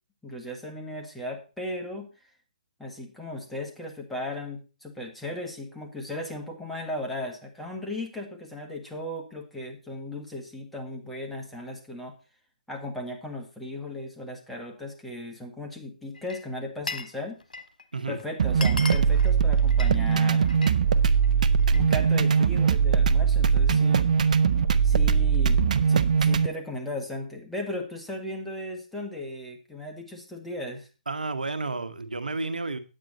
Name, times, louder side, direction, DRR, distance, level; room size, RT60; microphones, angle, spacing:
voice 1, 0.2-2.1 2.8-12.1 12.7-17.4 18.1-20.5 21.7-24.3 24.8-25.6 25.9-30.9, left 1 dB, 5° left, 1 dB, 1.7 m, -36 dB
Glass, 16.2-17.2 17.4-17.8 18.2-18.3 18.5-20.8 21.1-21.9, left 3 dB, 85° left, 1.2 m, -37 dB
sound 1, 18.4-26.5, right 6 dB, 60° right, 0.7 m, -21 dB
voice 2, 31.1-32.8, right 3 dB, 90° right, 10 dB, 1.3 m, -31 dB
9.1 x 8.9 x 4.2 m, 0.32 s
hypercardioid pair, 140°, 4 cm